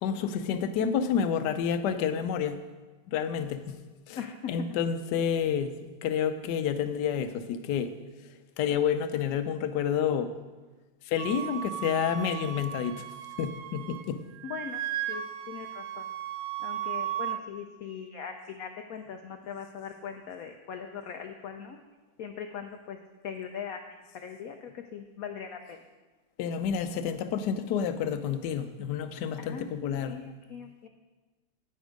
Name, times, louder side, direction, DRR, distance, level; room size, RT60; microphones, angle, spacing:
voice 1, 0.0-2.6 3.1-3.8 4.1-4.2 4.5-5.7 6.0-7.9 8.6-10.3 11.1-13.1 13.4-14.2 26.4-30.2, left 7 dB, 70° left, 9 dB, 1.1 m, -29 dB
voice 2, 4.2-4.5 14.4-14.8 15.1-16.1 16.6-21.8 22.2-23.0 23.2-23.8 24.1-25.8 29.4-29.8 30.0-30.9, left 7 dB, 90° left, 6 dB, 0.7 m, -40 dB
Wind instrument woodwind instrument, 11.2-14.1 14.3-17.4, right 11 dB, 75° right, 1.2 m, -36 dB
9.3 x 8.0 x 5.2 m, 1.2 s
omnidirectional pair, 2.2 m